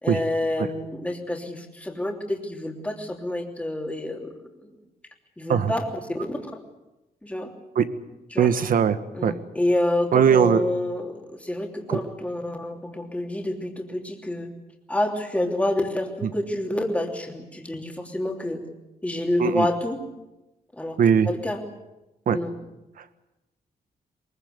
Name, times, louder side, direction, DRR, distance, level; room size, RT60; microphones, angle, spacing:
voice 1, 0.0-4.3 4.6-4.7 5.4-6.4 7.2-7.5 8.3-8.5 9.1-14.5 14.9-18.6 19.0-20.0 20.7-21.0 21.2-21.6 22.3-22.6, left 1 dB, 10° left, 2 dB, 3.2 m, -28 dB
voice 2, 8.4-9.3 10.1-10.6 11.9-12.0 19.4-19.7 21.0-21.3 22.3-22.4, right 7 dB, 65° right, 11 dB, 1.5 m, -20 dB
23.0 x 22.0 x 8.1 m, 0.98 s
wide cardioid pair, 160°, 15 cm